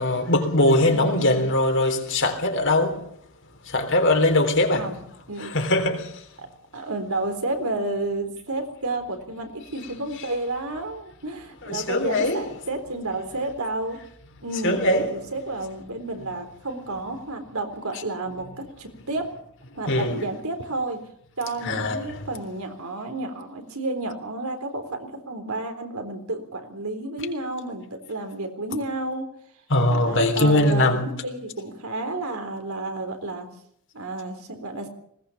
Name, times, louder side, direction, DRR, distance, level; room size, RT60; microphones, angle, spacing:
voice 1, 0.0-3.0 3.7-4.9 5.4-6.2 11.6-12.4 14.6-15.1 19.9-20.2 21.6-22.2 29.7-31.1, left 1 dB, 60° left, 3.7 m, -21 dB
voice 2, 0.9-1.5 4.7-5.0 5.3-5.6 6.7-14.0 14.4-19.3 19.8-21.0 21.4-29.3 29.8-33.5 33.9-34.9, right 2 dB, 80° right, 3.9 m, -31 dB
20.0 x 18.0 x 7.2 m
head